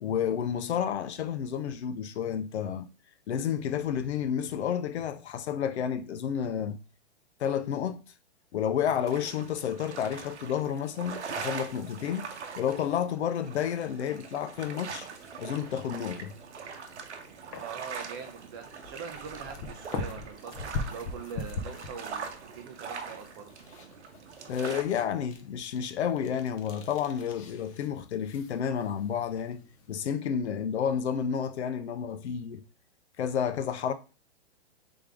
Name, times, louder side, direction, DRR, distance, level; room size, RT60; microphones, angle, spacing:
voice 1, 0.0-2.9 3.3-6.8 7.4-8.0 8.5-12.3 12.6-15.1 15.4-16.3 24.5-32.6 33.2-33.9, left 8 dB, 80° left, 0.6 m, -30 dB
sound 1, 8.8-24.8, right 6 dB, 90° right, 0.9 m, -42 dB
sound 2, 14.8-30.1, left 4 dB, 30° left, 0.6 m, -43 dB
voice 2, 17.5-23.5, right 6 dB, 20° right, 0.4 m, -43 dB
3.6 x 3.5 x 3.4 m
hypercardioid pair, 145°, 33 cm